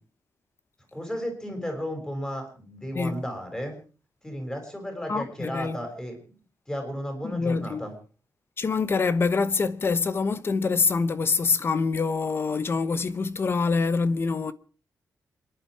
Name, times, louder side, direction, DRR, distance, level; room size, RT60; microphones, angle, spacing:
voice 1, 0.9-3.8 4.2-6.3 6.7-7.9, equal, 10° left, 5.9 m, -34 dB
voice 2, 5.1-5.8 7.2-7.8 8.6-14.5, left 4 dB, 35° left, 1.0 m, -25 dB
27.5 x 11.5 x 4.7 m
wide cardioid pair, 160°, 7 cm